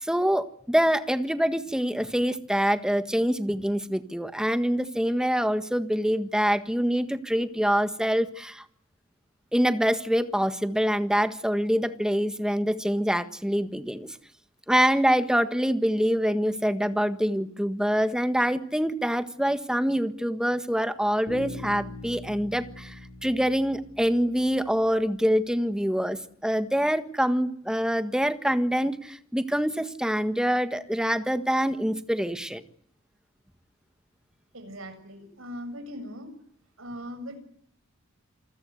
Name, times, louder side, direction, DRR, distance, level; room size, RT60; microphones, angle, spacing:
voice 1, 0.0-8.6 9.5-14.2 14.7-32.6, equal, 5° right, 10 dB, 1.6 m, -25 dB
Bass guitar, 21.3-25.0, left 2 dB, 65° left, 4.9 m, -42 dB
voice 2, 34.5-36.3 36.8-37.4, equal, 80° right, 8 dB, 7.5 m, -39 dB
28.5 x 20.5 x 8.2 m, 0.63 s
head